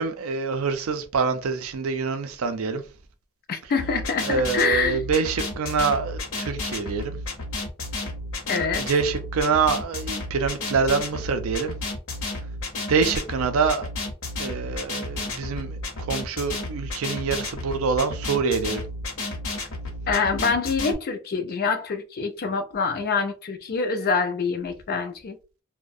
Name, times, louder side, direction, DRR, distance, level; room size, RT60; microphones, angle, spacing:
voice 1, 0.0-2.8 4.2-7.2 8.8-11.8 12.9-13.9 14.4-15.8 16.1-18.8, right 5 dB, 65° right, 0.4 m, -25 dB
voice 2, 3.5-5.0 8.5-8.9 20.1-25.4, left 5 dB, 45° left, 0.4 m, -25 dB
sound 1, 3.8-20.9, left 2 dB, 60° left, 0.8 m, -32 dB
2.3 x 2.1 x 2.6 m
head